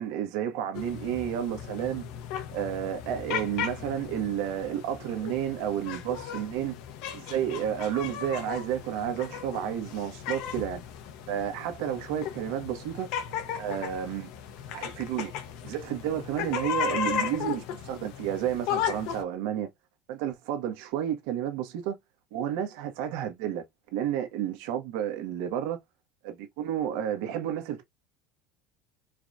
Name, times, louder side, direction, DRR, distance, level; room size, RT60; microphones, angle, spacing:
voice 1, 0.0-2.0 2.5-6.7 7.1-10.8 11.3-13.1 13.6-14.3 14.7-15.3 15.6-19.7 20.1-21.9 22.3-23.6 23.9-25.8 26.2-27.8, right 10 dB, 70° right, 1.5 m, -31 dB
sound 1, 0.7-19.2, left 8 dB, 55° left, 1.0 m, -36 dB
4.8 x 3.1 x 2.6 m
cardioid pair, 155°, 0 cm